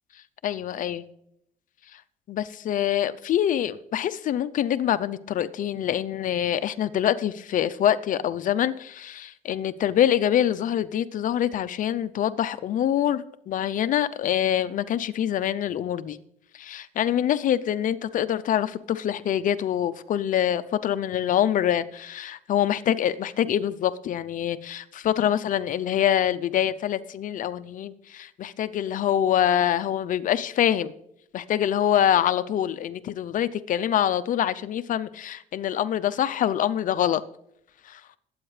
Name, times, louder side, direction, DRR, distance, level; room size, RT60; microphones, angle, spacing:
voice 1, 0.4-1.0 1.9-2.0 2.3-16.2 16.5-30.9 31.3-37.2 37.8-38.0, left 10 dB, 50° left, 13 dB, 0.6 m, -25 dB
21.0 x 8.7 x 3.3 m, 0.77 s
cardioid pair, 110°, 17 cm